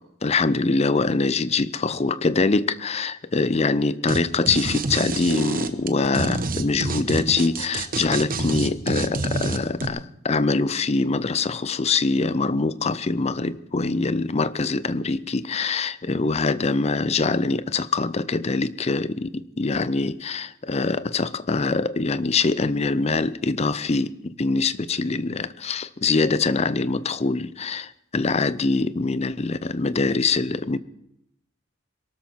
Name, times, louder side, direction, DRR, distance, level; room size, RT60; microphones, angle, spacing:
voice 1, 0.2-30.8, left 3 dB, 30° left, 0.5 m, -24 dB
sound 1, 4.1-4.2 4.5-9.9, right 3 dB, 45° right, 1.1 m, -27 dB
22.5 x 13.0 x 4.5 m
head